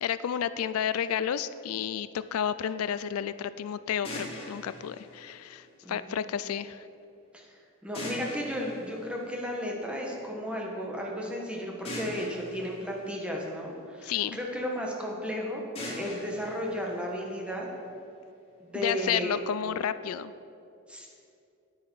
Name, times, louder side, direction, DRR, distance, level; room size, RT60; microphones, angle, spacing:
voice 1, 0.0-6.8 14.0-14.4 18.7-20.3, left 9 dB, 90° left, 15 dB, 0.4 m, -31 dB
sound 1, 4.0-6.1 7.9-9.9 11.8-14.1 15.7-17.8, left 1 dB, 25° left, 2.4 m, -42 dB
voice 2, 5.8-6.2 7.3-7.5 7.8-15.6 16.0-17.7 18.6-19.4 20.9-21.1, equal, 5° right, -1 dB, 1.4 m, -34 dB
9.6 x 9.0 x 5.6 m, 2.7 s
head